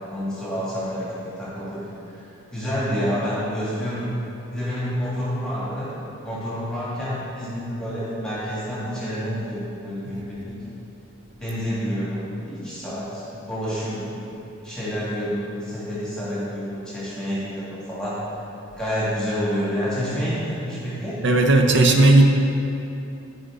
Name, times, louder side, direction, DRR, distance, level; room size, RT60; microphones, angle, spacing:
voice 1, 0.1-1.8 2.1-2.2 2.5-4.1 4.5-5.9 6.2-10.5 11.4-14.3 14.6-18.2 18.8-21.2, equal, 5° left, -10 dB, 1.7 m, -28 dB
voice 2, 21.2-22.3, right 2 dB, 60° right, 3 dB, 0.6 m, -15 dB
10.5 x 5.1 x 3.7 m, 2.7 s
head